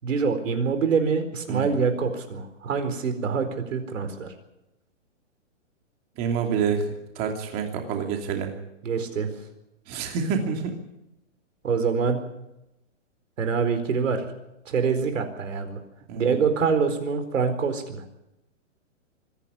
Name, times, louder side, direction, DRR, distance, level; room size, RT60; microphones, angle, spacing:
voice 1, 0.0-4.3 8.8-9.3 11.6-12.2 13.4-14.2 14.7-15.8 16.1-18.0, right 5 dB, 85° right, 8 dB, 4.4 m, -25 dB
voice 2, 6.2-6.8 7.2-8.5 9.9-10.7 16.1-16.3, right 6 dB, 25° right, 4 dB, 2.8 m, -27 dB
25.0 x 11.0 x 10.0 m, 0.89 s
hypercardioid pair, 165°, 37 cm